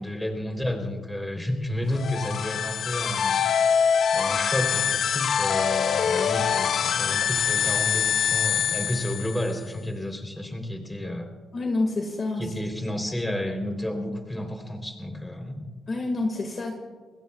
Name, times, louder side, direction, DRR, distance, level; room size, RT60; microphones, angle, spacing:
voice 1, 0.0-3.4 4.1-11.3 12.4-15.7, left 1 dB, 5° left, 3 dB, 3.4 m, -31 dB
sound 1, 1.9-9.6, left 7 dB, 60° left, 0.4 m, -24 dB
voice 2, 11.5-12.5 15.9-16.7, left 2 dB, 40° left, 3 dB, 1.8 m, -28 dB
28.5 x 20.5 x 2.3 m, 1.4 s
cardioid pair, 90°, 0 cm